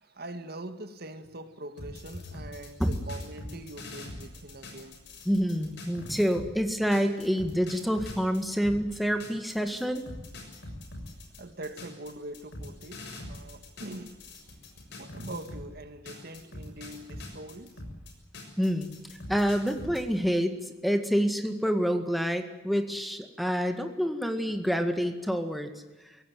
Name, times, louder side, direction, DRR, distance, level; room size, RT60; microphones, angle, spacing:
voice 1, 0.0-5.0 11.4-14.2 15.0-17.8, right 1 dB, 50° right, 1.8 m, -43 dB
sound 1, 1.8-6.5 6.9-15.7 16.1-20.0, left 1 dB, 60° left, 6.7 m, -43 dB
voice 2, 5.3-10.0 18.6-25.7, equal, ahead, 2.0 m, -27 dB
24.0 x 18.0 x 9.4 m
head